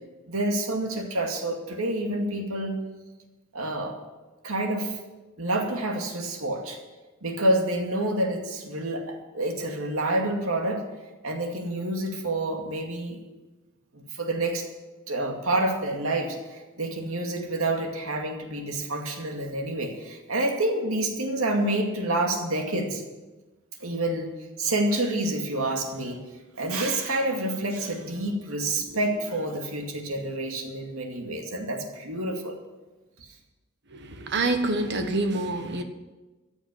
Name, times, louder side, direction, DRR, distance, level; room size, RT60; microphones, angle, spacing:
voice 1, 0.3-2.8 3.5-4.0 4.4-5.0 5.4-6.8 7.2-10.8 11.2-13.2 13.9-14.7 15.1-23.0 23.8-24.3 24.6-26.2 26.5-32.6 33.2-33.3, right 1 dB, 85° right, 2 dB, 2.4 m, -28 dB
voice 2, 34.0-35.8, right 2 dB, 55° right, 7 dB, 1.4 m, -26 dB
14.5 x 7.1 x 9.3 m, 1.2 s
head